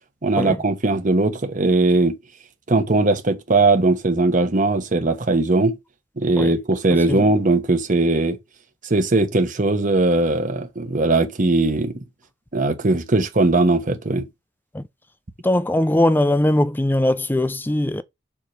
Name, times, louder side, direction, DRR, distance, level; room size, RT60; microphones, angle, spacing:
voice 1, 0.2-2.2 2.7-5.7 6.2-8.4 8.9-12.0 12.5-14.3, right 2 dB, 40° right, 1.0 m, -19 dB
voice 2, 6.9-7.2 14.7-14.8 15.4-18.0, left 1 dB, 10° left, 0.4 m, -20 dB
7.1 x 3.1 x 5.1 m
head